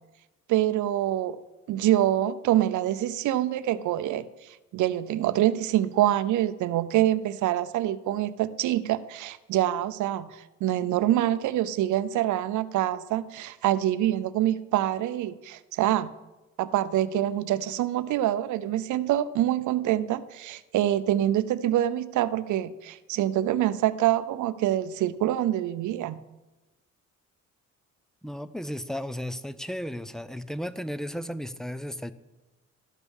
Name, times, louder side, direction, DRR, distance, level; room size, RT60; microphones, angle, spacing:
voice 1, 0.5-1.4 1.7-4.3 4.7-16.1 16.6-26.2, right 13 dB, 80° right, 15 dB, 0.6 m, -25 dB
voice 2, 28.2-32.1, equal, ahead, 14 dB, 0.4 m, -34 dB
12.5 x 5.4 x 6.3 m, 1.1 s
cardioid pair, 90°, 30 cm